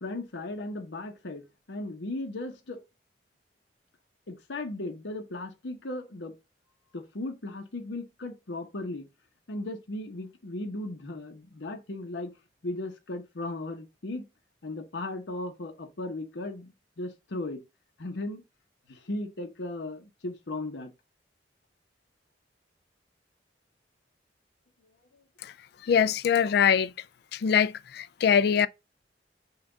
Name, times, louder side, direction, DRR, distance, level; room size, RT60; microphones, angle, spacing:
voice 1, 0.0-2.8 4.3-6.3 6.9-9.1 9.5-12.4 12.6-14.3 14.6-17.6 18.0-18.4 18.9-20.9, left 2 dB, 85° left, 0.9 m, -36 dB
voice 2, 25.8-26.9 27.3-28.7, left 7 dB, 60° left, 0.3 m, -23 dB
5.6 x 2.3 x 3.9 m
head